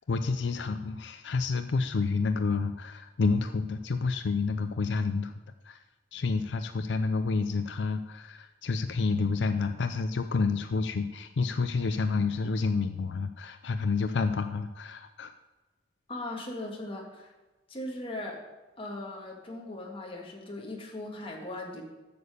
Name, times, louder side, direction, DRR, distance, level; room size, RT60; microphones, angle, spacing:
voice 1, 0.1-5.3 5.6-5.8 6.1-15.3, left 4 dB, 80° left, 9 dB, 0.5 m, -29 dB
voice 2, 16.1-17.3 17.7-18.4 18.8-21.8, left 1 dB, 30° left, 0 dB, 1.8 m, -38 dB
8.5 x 6.9 x 6.8 m, 1.1 s
head